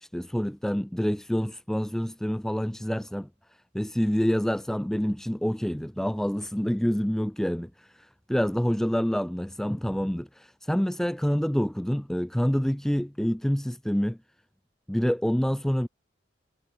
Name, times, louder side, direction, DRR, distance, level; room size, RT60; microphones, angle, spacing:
voice 1, 0.0-3.3 3.7-14.2 14.9-15.9, equal, ahead, 0.3 m, -27 dB
head